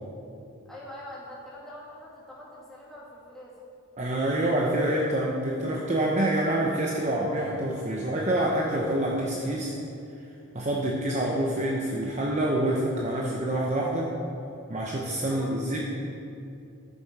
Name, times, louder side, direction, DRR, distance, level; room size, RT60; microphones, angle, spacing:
voice 1, 0.7-3.5 15.3-15.5, left 1 dB, ahead, -8 dB, 2.3 m, -44 dB
voice 2, 4.0-9.7 10.5-14.1 14.7-15.8, right 1 dB, 30° right, -3 dB, 0.8 m, -27 dB
13.5 x 6.9 x 4.7 m, 2.6 s
head